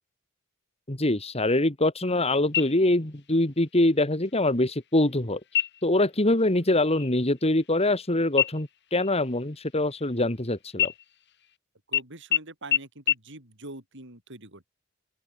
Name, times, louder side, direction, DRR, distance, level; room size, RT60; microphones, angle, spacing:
voice 1, 0.9-5.4 5.8-10.9, left 1 dB, 30° left, 2.8 m, -24 dB
sound 1, 2.5-3.2 3.6-3.7 4.2-4.8 5.5-6.0 6.4-6.6 6.9-8.0 8.4-10.4 10.7-11.5 11.9-12.0 12.3-12.4 12.7-12.8 13.1-13.2, left 10 dB, 55° left, 3.4 m, -29 dB
voice 2, 11.9-14.7, right 2 dB, 60° right, 7.8 m, -44 dB
open air
head